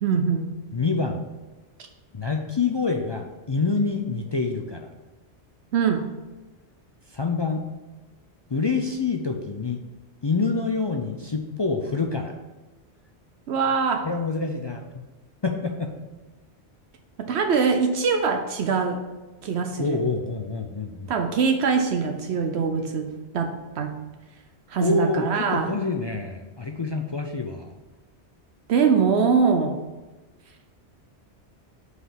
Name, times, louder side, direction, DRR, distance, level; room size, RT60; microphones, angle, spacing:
voice 1, 0.0-0.5 5.7-6.0 13.5-14.1 17.2-19.0 19.4-20.0 21.1-23.9 24.7-25.7 28.7-29.7, right 5 dB, 75° right, 5 dB, 0.9 m, -23 dB
voice 2, 0.7-1.2 2.1-4.9 7.1-7.6 8.5-9.8 10.2-12.3 14.0-14.8 15.4-15.9 19.8-21.1 24.8-27.7, left 4 dB, 45° left, 3 dB, 0.3 m, -26 dB
5.5 x 4.8 x 5.8 m, 1.1 s
omnidirectional pair, 1.1 m